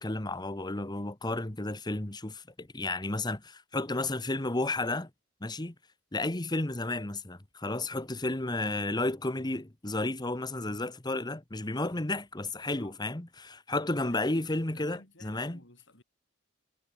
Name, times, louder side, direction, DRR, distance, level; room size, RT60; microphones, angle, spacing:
voice 1, 0.0-5.1 5.4-5.7 6.1-15.6, left 2 dB, 20° left, 1.3 m, -32 dB
voice 2, 12.7-13.1 14.1-14.2 14.6-16.0, left 2 dB, 65° left, 7.1 m, -56 dB
head